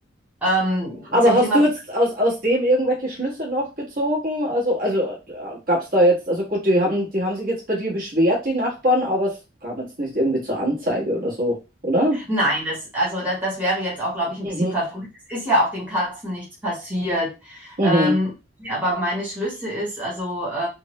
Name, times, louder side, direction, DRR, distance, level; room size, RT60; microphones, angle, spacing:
voice 1, 0.4-1.6 12.1-18.3 18.6-20.7, equal, 10° right, -7 dB, 1.0 m, -25 dB
voice 2, 1.1-9.4 9.6-11.6 11.8-12.2 14.4-14.7 17.8-18.2, equal, 45° right, -4 dB, 1.4 m, -21 dB
3.5 x 2.1 x 3.0 m, 0.27 s
head